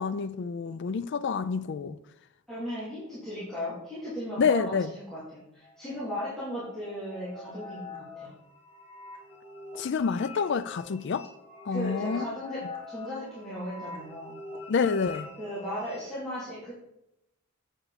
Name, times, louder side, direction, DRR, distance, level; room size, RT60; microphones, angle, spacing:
voice 1, 0.0-2.0 4.4-4.9 9.8-11.3 11.7-12.2 14.7-15.3, left 5 dB, 55° left, 0.4 m, -28 dB
voice 2, 2.5-8.3 11.7-14.4 15.4-16.7, equal, ahead, 3.0 m, -36 dB
sound 1, 5.6-16.0, left 3 dB, 25° left, 2.3 m, -45 dB
8.0 x 7.7 x 4.1 m
head